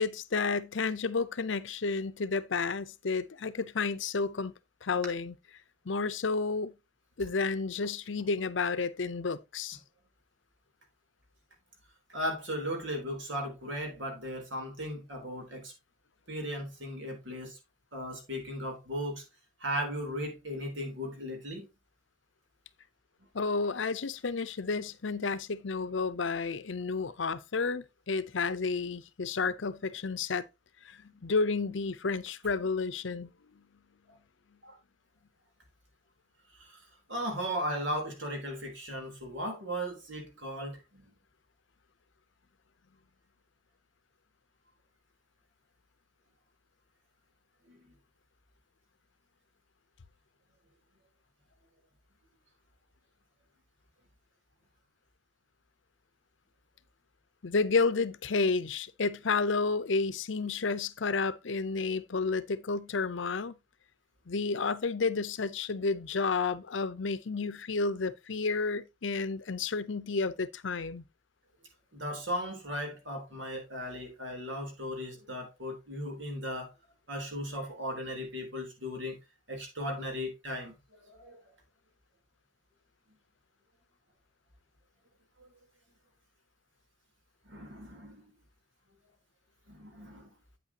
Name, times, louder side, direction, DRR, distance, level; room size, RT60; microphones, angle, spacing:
voice 1, 0.0-4.5 4.8-5.3 5.9-6.7 7.2-9.8 23.3-30.5 30.8-33.6 57.4-63.6 64.3-71.0, left 4 dB, 75° left, 0.7 m, -31 dB
voice 2, 12.1-15.7 16.3-17.6 17.9-19.2 19.6-21.7 34.1-34.2 34.6-34.8 36.6-36.8 37.1-41.0 47.7-47.8 71.9-76.7 77.1-79.2 79.5-81.4 85.4-85.5 87.5-88.3 89.7-90.3, equal, 75° right, 3.6 m, -37 dB
8.8 x 8.3 x 2.9 m
head